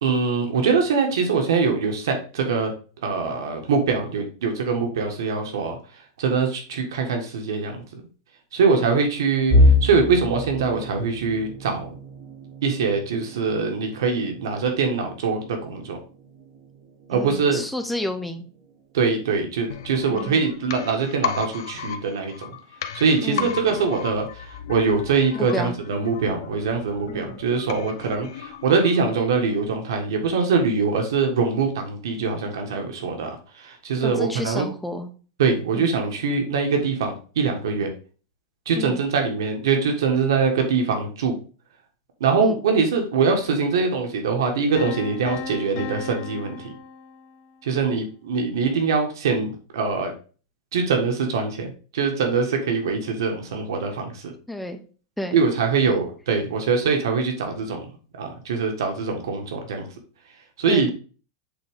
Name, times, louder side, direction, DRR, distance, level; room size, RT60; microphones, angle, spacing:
voice 1, 0.0-2.7 3.0-5.8 6.2-8.0 8.5-9.5 9.8-11.9 12.6-16.0 17.1-17.6 18.9-22.5 22.9-33.3 33.6-34.7 35.4-37.9 38.6-41.3 42.2-46.7 47.6-50.1 50.7-54.3 55.3-57.8 58.2-59.9 60.6-60.9, right 5 dB, 85° right, 4 dB, 1.6 m, -23 dB
sound 1, 9.5-21.3 21.8-22.0 22.4-22.6 23.4-23.9, left 1 dB, 50° right, 2.2 m, -27 dB
voice 2, 17.1-18.5 20.1-20.5 23.2-23.5 25.3-25.8 27.1-27.4 34.0-35.1 35.7-36.0 38.8-39.0 42.4-42.6 54.5-54.8 55.2-55.4 55.9-56.0 60.7-60.9, left 1 dB, ahead, 6 dB, 0.7 m, -31 dB
sound 2, 19.7-29.4 29.7-29.8, left 9 dB, 70° left, 0.8 m, -35 dB
sound 3, 44.8-47.7, left 6 dB, 40° left, 0.9 m, -36 dB
7.8 x 3.7 x 3.6 m, 0.37 s
supercardioid pair, 170°, 2 cm